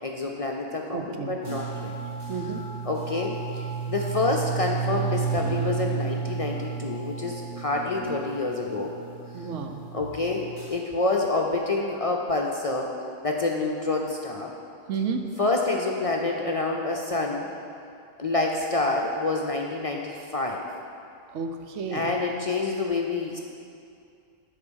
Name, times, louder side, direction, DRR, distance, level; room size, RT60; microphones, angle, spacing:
voice 1, 0.0-2.0 2.8-8.9 9.9-12.9 13.2-14.5 15.4-17.5 18.2-20.7 21.9-23.4, left 3 dB, 45° left, 0 dB, 0.5 m, -27 dB
voice 2, 0.9-1.4 2.3-2.6 9.3-9.8 14.9-15.3 21.3-22.1, right 5 dB, 90° right, 5 dB, 1.1 m, -31 dB
sound 1, 1.4-10.7, right 6 dB, 50° right, 2.2 m, -32 dB
11.0 x 4.7 x 6.2 m, 2.5 s
omnidirectional pair, 1.2 m